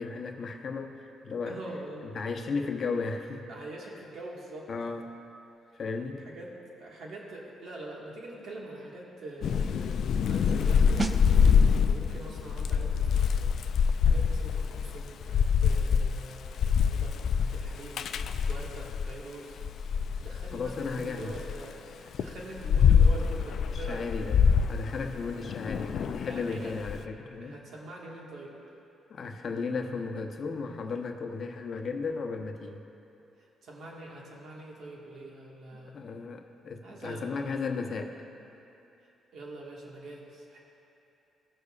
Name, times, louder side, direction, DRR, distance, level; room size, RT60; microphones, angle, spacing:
voice 1, 0.0-1.6 2.0-3.5 4.7-5.1 5.7-6.3 20.5-21.4 23.7-24.4 24.7-27.6 29.1-32.8 35.7-38.1, left 4 dB, 50° left, 4 dB, 0.8 m, -35 dB
voice 2, 1.5-2.1 3.5-4.7 6.2-6.5 6.8-13.6 14.0-18.1 18.5-19.6 20.2-24.1 26.3-26.7 27.4-28.5 33.6-36.0 36.8-37.4 39.3-40.6, right 1 dB, 65° right, -3 dB, 1.6 m, -44 dB
Thunder / Rain, 9.4-19.1 19.6-21.5 22.1-26.9, left 6 dB, 65° left, 0.3 m, -25 dB
sound 1, 11.0-21.5 21.8-22.0, right 3 dB, 25° right, 0.4 m, -44 dB
17.0 x 6.6 x 2.4 m, 2.9 s
cardioid pair, 90°, 0 cm